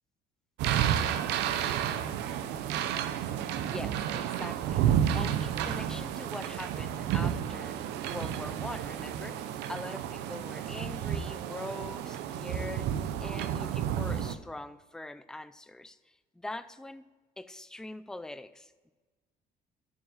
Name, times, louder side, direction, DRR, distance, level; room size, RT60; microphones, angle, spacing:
sound 1, 0.6-14.3, right 9 dB, 85° right, 0.6 m, -31 dB
voice 1, 3.6-17.1 17.4-18.9, left 2 dB, 5° left, 0.4 m, -43 dB
7.4 x 6.0 x 7.6 m
cardioid pair, 110°, 17 cm